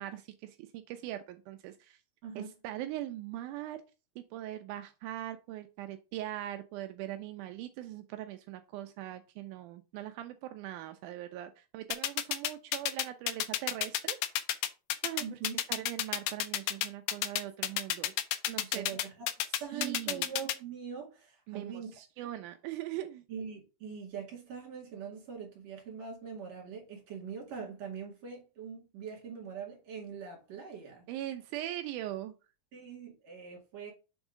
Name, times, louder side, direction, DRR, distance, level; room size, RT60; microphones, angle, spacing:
voice 1, 0.0-2.0 2.4-3.8 4.3-14.3 15.0-15.4 15.7-18.1 18.5-18.9 19.7-20.3 21.5-23.2 31.1-32.3, right 13 dB, 80° right, 1.8 m, -41 dB
sound 1, 11.9-20.5, left 12 dB, 85° left, 2.4 m, -30 dB
voice 2, 15.2-15.6 18.5-19.3 19.6-21.9 22.2-22.3 23.3-31.0 32.7-33.9, right 6 dB, 55° right, 3.0 m, -43 dB
6.3 x 3.6 x 4.9 m
omnidirectional pair, 4.1 m